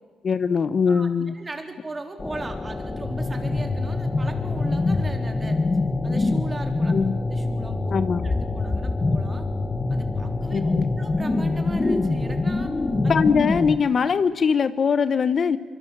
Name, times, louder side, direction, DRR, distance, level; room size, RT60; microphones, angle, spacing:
voice 1, 0.2-1.3 6.9-7.2 7.9-8.3 10.5-10.9 13.1-15.6, left 6 dB, 45° left, 13 dB, 1.0 m, -21 dB
voice 2, 0.9-5.6 6.0-6.9 7.2-7.9 8.2-9.5 9.9-12.7 13.0-13.1, right 2 dB, 25° right, 4 dB, 3.8 m, -38 dB
sound 1, 2.2-13.8, left 3 dB, 25° left, 1.6 m, -25 dB
24.5 x 23.5 x 7.5 m, 1.5 s
cardioid pair, 90°, 0 cm